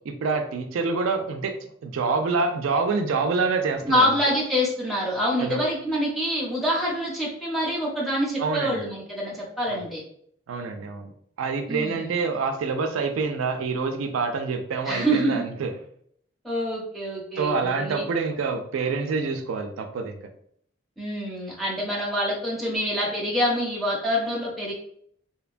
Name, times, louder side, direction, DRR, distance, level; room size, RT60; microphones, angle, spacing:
voice 1, 0.0-1.5 1.8-4.1 5.4-5.6 8.4-8.8 9.7-9.8 10.5-11.1 11.4-15.7 17.4-20.2, right 4 dB, 90° right, 6 dB, 0.3 m, -26 dB
voice 2, 3.8-10.0 11.7-12.1 14.9-15.5 16.4-18.0 21.0-24.7, equal, ahead, -5 dB, 0.7 m, -26 dB
2.8 x 2.2 x 2.4 m, 0.64 s
head